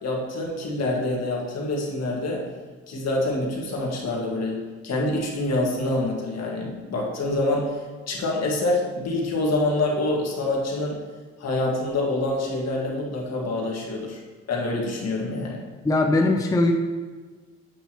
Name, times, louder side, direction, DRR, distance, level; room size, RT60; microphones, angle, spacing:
voice 1, 0.0-2.5 2.9-7.8 8.1-11.0 11.4-14.2 14.5-15.6, left 2 dB, 60° left, -1 dB, 1.7 m, -26 dB
voice 2, 15.8-16.7, left 2 dB, 10° left, 2 dB, 0.5 m, -20 dB
8.3 x 5.7 x 3.0 m, 1.4 s
cardioid pair, 90°, 30 cm